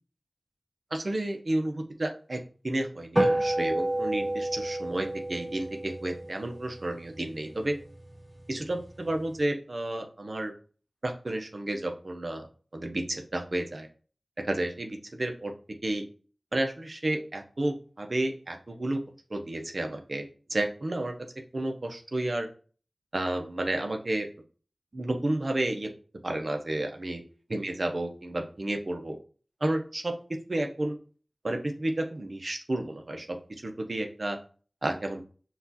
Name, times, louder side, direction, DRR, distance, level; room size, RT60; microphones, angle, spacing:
voice 1, 0.9-7.8 8.5-10.5 11.0-12.5 12.7-13.9 14.4-15.5 15.8-16.0 16.5-19.0 19.3-21.1 21.5-22.5 23.1-24.3 24.9-25.9 26.2-27.2 27.5-29.2 29.6-30.1 30.5-31.0 31.4-33.4 33.6-34.4 34.8-35.2, right 1 dB, 60° right, 4 dB, 0.7 m, -31 dB
sound 1, 3.2-7.8, right 1 dB, 20° right, 2.0 m, -30 dB
5.7 x 2.4 x 2.8 m, 0.40 s
wide cardioid pair, 55°, 0 cm